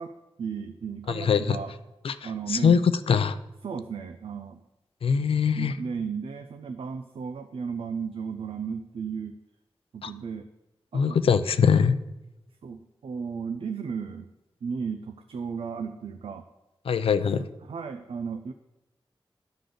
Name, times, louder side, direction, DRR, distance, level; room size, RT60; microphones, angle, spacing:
voice 1, 0.0-1.7 2.2-2.8 3.6-4.6 5.6-9.4 9.9-10.5 10.9-11.2 11.6-11.7 12.6-14.3 14.6-16.5 17.6-18.5, right 6 dB, 90° right, 8 dB, 0.4 m, -34 dB
voice 2, 1.1-1.6 2.0-2.1 2.5-2.8 3.1-3.4 5.0-5.7 10.0-10.1 10.9-12.0 16.9-17.4, left 6 dB, 90° left, 12 dB, 0.4 m, -22 dB
11.0 x 3.9 x 6.6 m, 0.97 s
cardioid pair, 50°, 9 cm